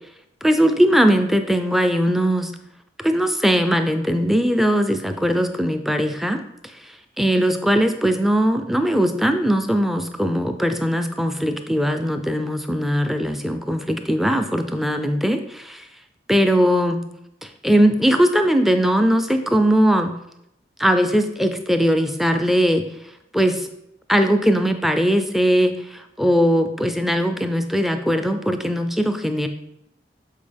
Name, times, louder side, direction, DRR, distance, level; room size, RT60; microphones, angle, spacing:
voice 1, 0.4-2.5 3.0-6.4 6.8-15.8 16.3-17.0 17.4-20.1 20.8-22.8 23.3-23.7 24.1-29.5, equal, ahead, 6 dB, 0.4 m, -20 dB
7.4 x 4.1 x 3.4 m, 0.80 s
head